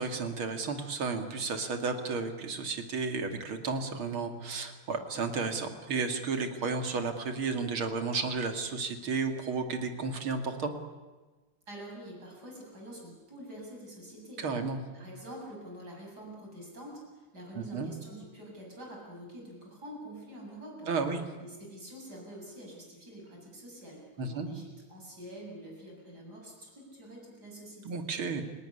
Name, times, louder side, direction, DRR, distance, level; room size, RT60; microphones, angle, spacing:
voice 1, 0.0-10.7 14.4-14.8 17.5-17.9 20.9-21.2 24.2-24.5 27.8-28.4, right 4 dB, 75° right, 6 dB, 3.1 m, -33 dB
voice 2, 11.7-14.5 14.9-20.9 21.4-28.0, right 1 dB, 50° right, -1 dB, 8.3 m, -46 dB
29.5 x 18.0 x 9.9 m, 1.3 s
omnidirectional pair, 2.3 m